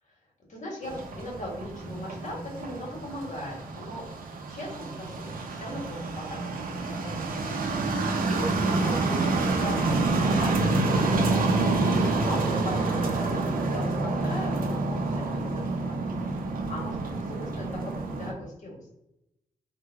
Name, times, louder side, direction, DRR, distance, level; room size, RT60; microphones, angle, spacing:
voice 1, 0.5-4.0 4.5-7.7 8.2-16.0 16.7-18.8, left 1 dB, 55° left, -2 dB, 1.3 m, -39 dB
sound 1, 0.8-18.3, right 3 dB, 75° right, 0.6 m, -28 dB
3.3 x 2.2 x 3.3 m, 0.87 s
wide cardioid pair, 110°, 15 cm